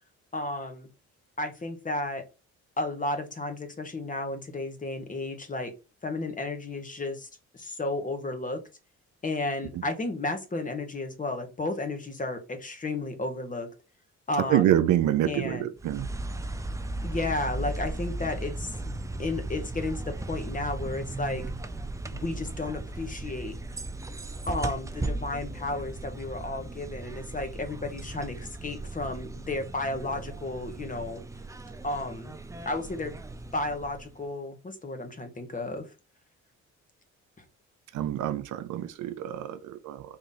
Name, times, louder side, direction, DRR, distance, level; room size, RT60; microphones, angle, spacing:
voice 1, 0.3-0.9 1.4-2.2 2.8-5.7 6.0-7.3 7.5-8.6 9.2-13.7 14.3-14.7 15.2-15.7 17.0-21.4 22.1-23.5 24.5-31.2 31.8-32.3 32.6-33.2 33.5-35.9, left 2 dB, 25° left, 1.2 m, -33 dB
voice 2, 14.5-16.1 37.9-40.0, right 12 dB, 75° right, 0.6 m, -26 dB
sound 1, 15.8-34.2, right 2 dB, 10° right, 0.4 m, -36 dB
3.7 x 2.9 x 4.1 m
cardioid pair, 90°, 30 cm